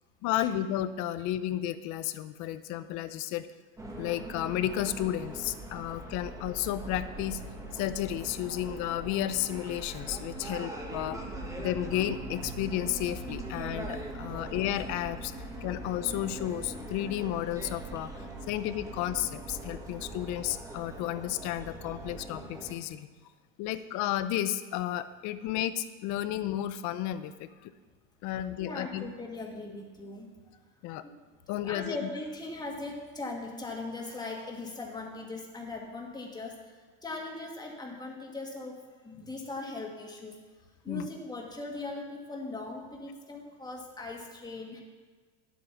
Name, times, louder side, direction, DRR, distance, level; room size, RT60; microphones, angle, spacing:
voice 1, 0.2-3.5 4.0-7.4 7.7-11.2 11.6-15.3 15.6-18.1 18.5-23.1 23.6-27.7 28.2-29.1 30.8-31.0 31.5-32.0 40.9-41.1, left 12 dB, 50° left, 13 dB, 0.7 m, -32 dB
sound 1, 3.8-22.7, right 1 dB, 10° right, 1.4 m, -41 dB
voice 2, 17.9-18.2 28.6-30.3 31.6-36.7 37.0-40.4 40.8-44.8, left 2 dB, 10° left, 0 dB, 1.8 m, -40 dB
10.0 x 8.2 x 5.8 m, 1.5 s
supercardioid pair, 135°, 38 cm